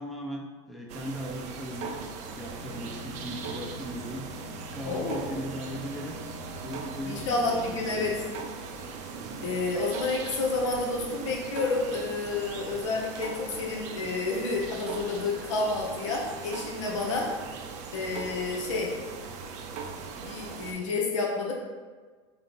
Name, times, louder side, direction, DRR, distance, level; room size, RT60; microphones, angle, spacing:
voice 1, 0.0-2.0 2.4-4.3 4.7-6.2 6.6-8.3 9.2-9.6, equal, ahead, -1 dB, 0.6 m, -38 dB
sound 1, 0.9-20.7, right 5 dB, 50° right, 0.5 m, -39 dB
sound 2, 2.5-9.1, left 4 dB, 35° left, 1.3 m, -47 dB
voice 2, 4.8-5.2 7.0-8.2 9.4-17.3 17.9-18.9 20.2-21.5, left 3 dB, 85° left, -1 dB, 1.0 m, -30 dB
3.3 x 3.1 x 4.0 m, 1.5 s
supercardioid pair, 110°, 15 cm